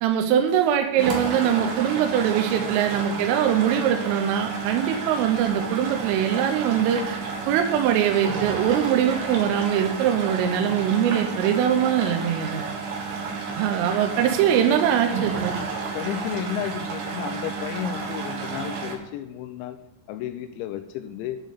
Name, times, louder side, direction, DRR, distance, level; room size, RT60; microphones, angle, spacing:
voice 1, 0.0-7.2 7.5-12.6 13.6-15.6, right 9 dB, 85° right, 5 dB, 3.4 m, -22 dB
sound 1, 1.0-19.0, right 5 dB, 65° right, 2.8 m, -31 dB
voice 2, 15.9-19.8 20.1-21.4, left 10 dB, 80° left, 8 dB, 2.7 m, -32 dB
11.5 x 5.1 x 8.2 m, 0.92 s
omnidirectional pair, 5.7 m